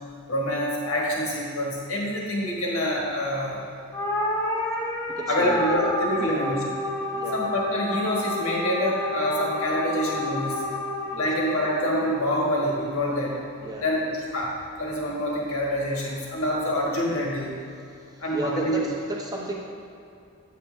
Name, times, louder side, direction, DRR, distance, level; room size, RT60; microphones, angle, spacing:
voice 1, 0.3-3.6 5.3-6.6 7.3-10.6 11.2-13.4 13.8-14.0 14.3-14.5 14.8-17.5 18.2-18.8, equal, 80° left, -3 dB, 1.4 m, -26 dB
sound 1, 3.9-12.5, left 1 dB, 15° left, 0.7 m, -30 dB
voice 2, 5.1-5.8 6.2-6.5 7.1-7.4 11.1-11.3 13.6-13.9 18.1-19.5, right 1 dB, 20° right, -2 dB, 0.8 m, -34 dB
8.2 x 5.8 x 3.3 m, 2.5 s
head